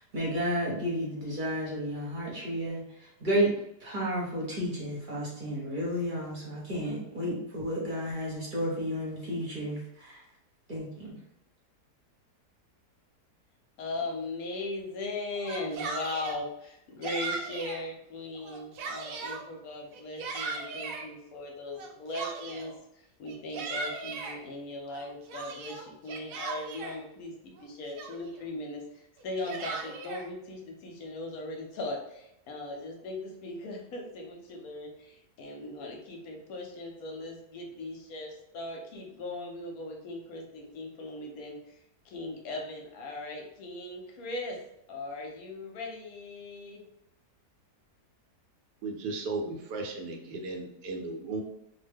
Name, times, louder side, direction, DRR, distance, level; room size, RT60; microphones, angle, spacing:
voice 1, 0.1-3.5 3.8-10.2 10.7-11.2, equal, 40° right, -5 dB, 0.8 m, -32 dB
voice 2, 13.8-41.8 42.0-44.6 44.9-46.8, left 2 dB, 70° left, 1 dB, 1.0 m, -39 dB
Yell, 15.4-16.4 17.0-17.8 18.4-19.4 19.9-21.0 21.8-22.7 23.3-24.4 24.9-27.0 27.6-27.7 27.9-28.4 29.2-30.3, right 4 dB, 70° right, 0.9 m, -37 dB
voice 3, 48.8-51.4, right 3 dB, 90° right, 3 dB, 1.2 m, -35 dB
2.8 x 2.1 x 3.4 m, 0.81 s
omnidirectional pair, 1.7 m